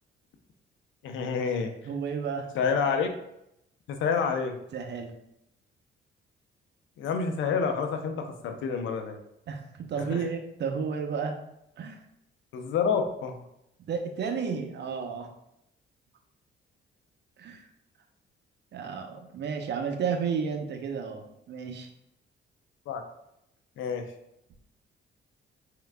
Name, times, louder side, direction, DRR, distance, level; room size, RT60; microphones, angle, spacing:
voice 1, 1.0-1.7 2.5-3.1 3.9-4.6 7.0-9.2 10.1-10.2 12.5-13.3 22.9-23.0 23.8-24.1, left 6 dB, 80° left, 5 dB, 0.6 m, -28 dB
voice 2, 1.8-2.5 4.7-5.1 9.5-11.4 11.8-12.0 13.8-15.3 17.4-17.7 18.7-21.9, right 6 dB, 60° right, 5 dB, 0.7 m, -32 dB
4.5 x 3.7 x 2.2 m, 0.80 s
cardioid pair, 90°, 20 cm